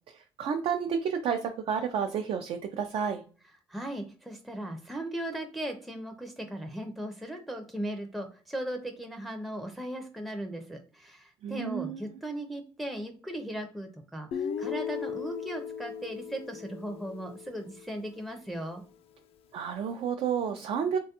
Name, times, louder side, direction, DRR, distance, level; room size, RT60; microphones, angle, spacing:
voice 1, 0.1-3.2 11.4-12.2 19.5-21.0, right 7 dB, 70° right, 5 dB, 0.4 m, -31 dB
voice 2, 3.7-18.8, right 1 dB, ahead, 3 dB, 0.4 m, -37 dB
Guitar, 14.3-18.3, left 7 dB, 70° left, 0.4 m, -37 dB
3.2 x 2.2 x 2.8 m, 0.39 s
cardioid pair, 80°, 10 cm